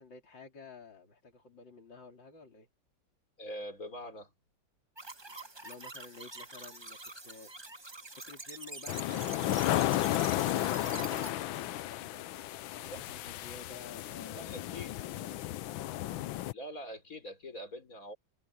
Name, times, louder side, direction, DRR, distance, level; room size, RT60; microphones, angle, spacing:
voice 1, 0.0-2.7 5.3-7.8 8.1-16.3, left 4 dB, 60° left, 4.3 m, -52 dB
voice 2, 3.4-4.3 12.9-13.0 14.3-15.0 16.5-18.2, equal, 40° left, 4.4 m, -43 dB
sound 1, 5.0-11.3, right 2 dB, 15° right, 1.0 m, -45 dB
sound 2, 8.9-16.5, left 15 dB, 75° left, 1.4 m, -33 dB
omnidirectional pair, 2.2 m